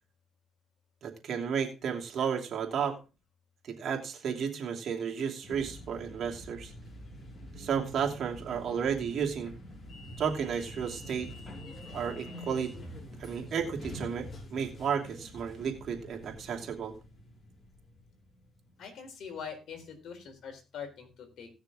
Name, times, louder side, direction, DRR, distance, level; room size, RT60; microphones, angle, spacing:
voice 1, 1.0-3.0 3.7-6.7 7.6-9.5 10.2-11.3 11.9-12.7 13.2-16.9, right 7 dB, 60° right, 1 dB, 2.7 m, -33 dB
sound 1, 5.4-19.4, left 1 dB, 45° left, 5.2 m, -46 dB
voice 2, 18.8-21.5, left 6 dB, 70° left, 5 dB, 3.7 m, -43 dB
18.0 x 6.5 x 3.7 m, 0.32 s
cardioid pair, 90°, 0 cm